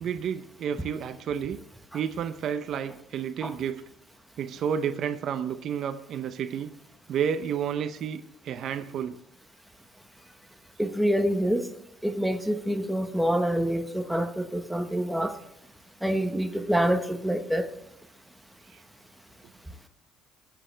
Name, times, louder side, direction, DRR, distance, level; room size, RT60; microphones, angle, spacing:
voice 1, 0.0-1.6 1.9-3.8 4.4-6.7 7.1-9.2 18.7-18.8, right 8 dB, 60° right, 11 dB, 0.7 m, -31 dB
voice 2, 10.8-11.7 12.0-15.3 16.0-17.6, equal, 5° right, 6 dB, 1.2 m, -26 dB
21.5 x 7.8 x 3.3 m, 0.80 s
cardioid pair, 100°, 0 cm